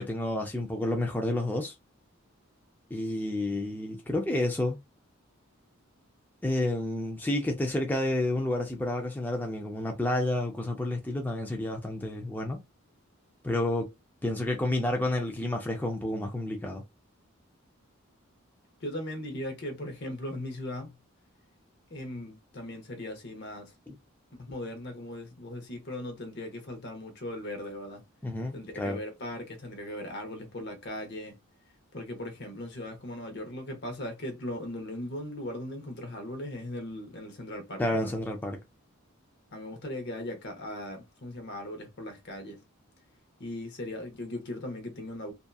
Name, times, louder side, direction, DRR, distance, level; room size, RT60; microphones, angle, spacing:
voice 1, 0.0-1.7 2.9-4.8 6.4-12.6 13.4-13.9 14.2-16.8 23.9-24.0 28.2-29.0 37.8-38.6, left 1 dB, 10° left, 0.3 m, -30 dB
voice 2, 18.8-21.0 21.9-23.7 24.3-28.0 28.5-31.4 31.9-38.1 39.5-42.6 43.4-45.3, left 1 dB, 50° left, 0.8 m, -38 dB
2.7 x 2.3 x 2.3 m
head